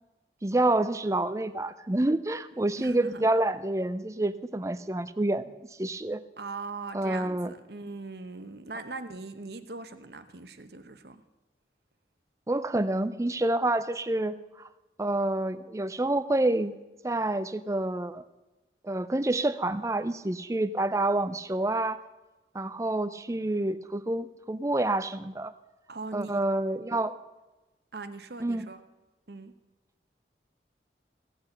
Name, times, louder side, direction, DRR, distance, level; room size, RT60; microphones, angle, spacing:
voice 1, 0.4-5.5 5.8-6.2 6.9-7.5 12.5-14.7 15.0-16.7 17.0-18.2 18.8-22.0 22.5-25.5 26.1-27.2 28.4-28.7, right 2 dB, 15° right, 14 dB, 0.4 m, -28 dB
voice 2, 2.7-3.3 6.4-11.2 25.9-26.3 26.9-27.0 27.9-28.8 29.3-29.6, right 3 dB, 65° right, 10 dB, 0.9 m, -40 dB
16.5 x 8.3 x 6.6 m, 1.1 s
head